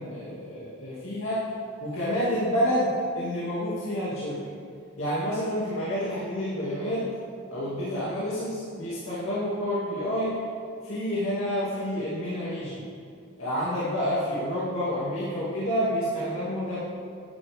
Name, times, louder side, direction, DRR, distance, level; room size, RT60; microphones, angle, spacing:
voice 1, 0.0-1.5 1.8-4.5 5.0-7.1 7.5-10.4 10.8-12.9 13.4-16.8, equal, 80° left, -10 dB, 2.5 m, -29 dB
11.5 x 10.0 x 3.6 m, 2.4 s
head